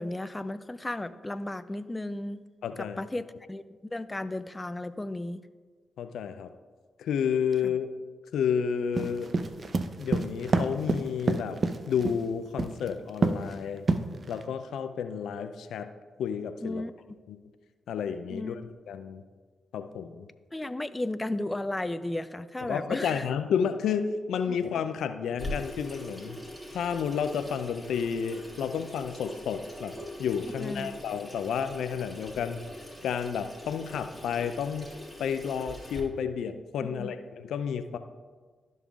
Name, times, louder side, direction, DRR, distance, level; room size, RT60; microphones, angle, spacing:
voice 1, 0.0-2.4 3.0-3.6 3.9-5.4 7.6-7.7 16.6-16.9 18.3-18.6 20.5-23.3 24.5-24.6 30.6-30.9 37.0-37.1, left 1 dB, 20° left, 12 dB, 0.4 m, -34 dB
voice 2, 2.6-3.0 6.0-6.5 7.0-7.9 8.3-9.3 10.0-11.6 11.9-13.8 14.3-15.9 16.2-16.8 17.3-17.4 17.9-19.2 19.7-20.3 22.7-26.4 26.7-32.6 33.0-34.9 35.2-38.0, left 7 dB, 75° left, 9 dB, 0.4 m, -31 dB
sound 1, 9.0-12.2 12.6-12.9 13.2-13.5 13.9-14.4, right 3 dB, 50° right, 0.6 m, -26 dB
Water tap faucet / Sink (filling or washing), 25.4-36.0, equal, 5° right, 2.3 m, -43 dB
12.5 x 5.4 x 2.4 m, 1.4 s
hypercardioid pair, 40°, 0 cm